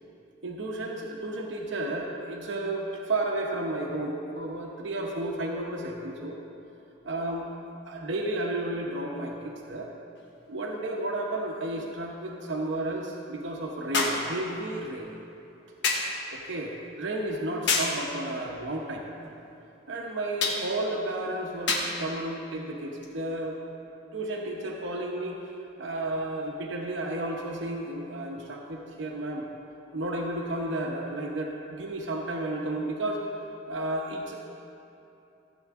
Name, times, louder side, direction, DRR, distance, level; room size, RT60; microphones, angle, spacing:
voice 1, 0.4-6.4 7.0-7.5 7.8-9.9 10.5-15.1 16.3-19.3 19.9-23.6 24.1-25.4 25.8-29.4 29.9-33.2 33.7-34.4, right 1 dB, 80° right, -1 dB, 0.9 m, -32 dB
Face Slap, 10.2-10.3 13.9-14.3 15.8-16.2 17.7-18.0 20.4-20.7 21.7-22.0 23.0-23.1, left 3 dB, 65° left, 1.2 m, -26 dB
15.0 x 8.0 x 3.6 m, 2.9 s
head